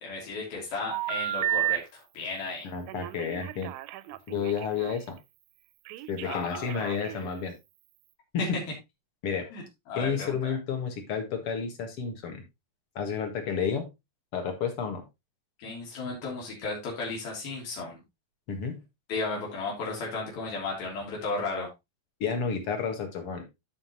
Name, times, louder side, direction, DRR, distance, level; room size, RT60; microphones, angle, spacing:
voice 1, 0.0-2.7 6.2-7.2 8.4-8.5 9.5-10.6 15.6-18.0 19.1-21.7, left 3 dB, 85° left, -3 dB, 4.7 m, -34 dB
Telephone, 0.9-1.8 2.9-5.0 5.9-7.3, right 16 dB, 85° right, 2.3 m, -32 dB
voice 2, 2.6-3.7 4.3-5.2 6.1-7.5 8.3-8.6 9.2-9.5 10.0-12.4 13.0-13.9 14.3-15.0 18.5-18.8 22.2-23.5, left 6 dB, 50° left, 5 dB, 2.1 m, -31 dB
13.0 x 5.2 x 2.9 m, 0.22 s
omnidirectional pair, 4.1 m